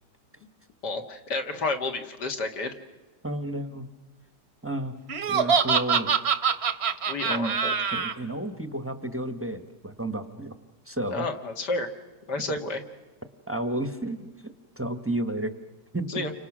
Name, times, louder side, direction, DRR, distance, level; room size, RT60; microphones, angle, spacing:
voice 1, 0.8-2.8 7.1-7.7 11.1-11.9 12.3-12.8 16.1-16.3, left 3 dB, 70° left, 5 dB, 2.4 m, -30 dB
voice 2, 3.2-3.9 4.6-4.9 5.3-6.1 7.2-7.6 7.9-10.5 10.9-11.3 12.4-12.5 13.5-14.3 14.8-15.5 15.9-16.2, right 1 dB, 10° right, 9 dB, 0.9 m, -31 dB
Laughter, 5.1-8.1, right 6 dB, 45° right, 1.1 m, -24 dB
29.5 x 25.5 x 6.1 m, 1.3 s
omnidirectional pair, 1.8 m